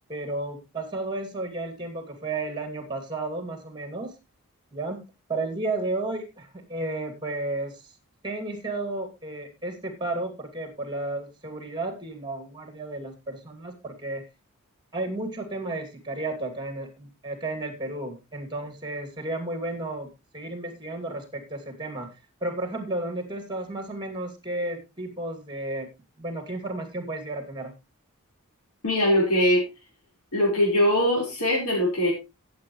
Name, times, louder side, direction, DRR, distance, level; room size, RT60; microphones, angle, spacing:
voice 1, 0.1-4.1 4.7-5.0 5.3-7.9 8.2-14.2 14.9-22.1 22.4-25.9 26.2-27.7, right 2 dB, 20° right, 5 dB, 2.5 m, -33 dB
voice 2, 28.8-29.6 30.3-32.1, left 1 dB, 85° left, -3 dB, 4.4 m, -21 dB
16.5 x 7.8 x 3.1 m, 0.26 s
head